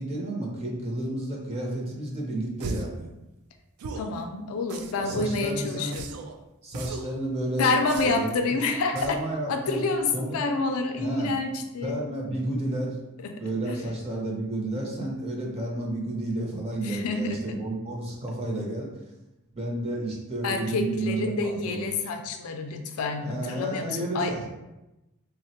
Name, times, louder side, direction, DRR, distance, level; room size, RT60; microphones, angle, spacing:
voice 1, 0.0-3.1 5.0-5.9 6.6-7.7 8.0-8.3 8.9-9.8 10.1-10.5 11.0-11.3 11.8-13.0 13.4-18.9 19.5-21.9 23.2-24.5, right 1 dB, 30° right, -1 dB, 0.5 m, -31 dB
sound 1, 2.6-3.0 3.8-4.2 4.7-5.2 5.9-6.4 6.7-7.2 7.9-8.4 9.0-9.3, right 3 dB, 80° right, 0.3 m, -37 dB
voice 2, 4.0-6.1 7.6-9.2 9.5-12.0 13.2-13.8 16.8-17.6 20.4-24.5, left 3 dB, 75° left, 6 dB, 0.4 m, -28 dB
3.3 x 2.0 x 2.8 m, 0.97 s
head